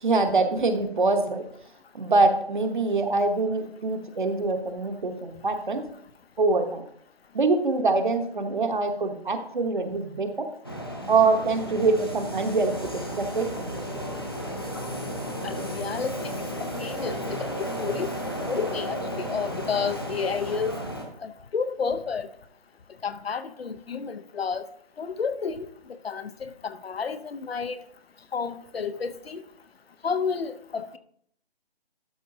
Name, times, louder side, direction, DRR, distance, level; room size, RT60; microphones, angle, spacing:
voice 1, 0.0-1.4 1.9-5.8 6.4-6.8 7.3-10.5 11.1-14.0, right 3 dB, 50° right, 7 dB, 1.0 m, -24 dB
sound 1, 10.6-21.1, equal, 25° left, 0.6 m, -33 dB
voice 2, 15.4-16.4 16.8-20.8 21.2-22.3 23.0-24.6 25.0-27.8 28.3-29.4 30.0-31.0, left 5 dB, 65° left, 12 dB, 0.7 m, -31 dB
12.0 x 5.8 x 2.6 m, 0.66 s
hypercardioid pair, 175°, 32 cm